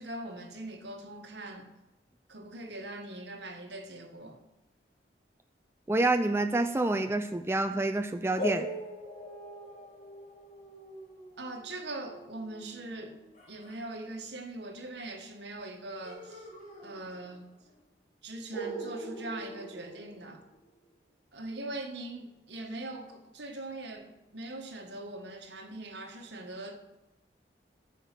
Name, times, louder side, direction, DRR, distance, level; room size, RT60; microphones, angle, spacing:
voice 1, 0.0-1.7 2.3-4.4 11.4-13.1 13.5-16.5 16.8-17.5 18.2-20.5 21.3-26.8, right 2 dB, 80° right, 1.5 m, -41 dB
voice 2, 5.9-8.7, right 2 dB, 15° right, 0.4 m, -27 dB
sound 1, 8.4-13.8 16.0-17.5 17.8-17.9 18.5-20.7, equal, 45° left, 3.1 m, -42 dB
13.5 x 7.1 x 5.9 m
head